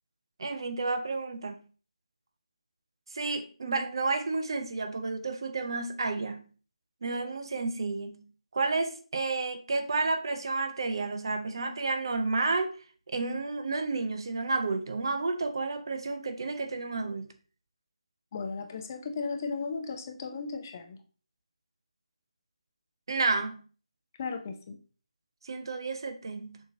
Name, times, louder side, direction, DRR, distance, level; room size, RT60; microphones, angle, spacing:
voice 1, 0.4-1.6 3.1-6.5 7.0-8.2 8.5-12.8 13.1-17.3 23.1-23.6 25.4-26.6, right 3 dB, 45° right, 0.5 m, -31 dB
voice 2, 18.3-21.0 24.2-24.8, left 4 dB, 30° left, 0.5 m, -35 dB
6.4 x 2.9 x 2.7 m
figure-of-eight pair, 155°, 3 cm